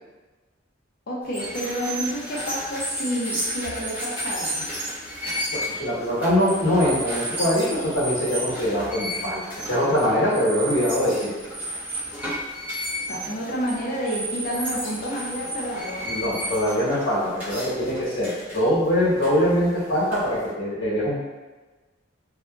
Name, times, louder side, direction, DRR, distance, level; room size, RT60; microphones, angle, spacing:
voice 1, 1.1-4.6 13.1-16.2, equal, 50° left, -4 dB, 0.6 m, -29 dB
sound 1, 1.2-20.5, equal, 10° right, 0.7 m, -33 dB
voice 2, 5.5-11.3 16.0-21.2, equal, 90° left, -9 dB, 1.1 m, -23 dB
2.7 x 2.4 x 2.2 m, 1.2 s
head